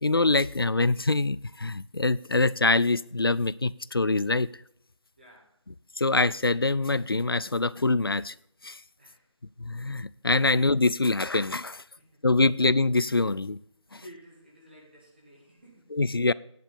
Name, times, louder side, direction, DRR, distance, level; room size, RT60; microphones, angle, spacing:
voice 1, 0.0-4.5 6.0-8.3 8.6-8.8 9.6-11.8 12.2-13.6 15.9-16.3, left 3 dB, 50° left, 20 dB, 0.4 m, -24 dB
voice 2, 5.2-5.6 9.0-9.4 12.0-12.2 13.9-16.0, equal, 20° right, -4 dB, 2.1 m, -53 dB
10.5 x 8.5 x 5.2 m, 0.73 s
figure-of-eight pair, 180°, 16 cm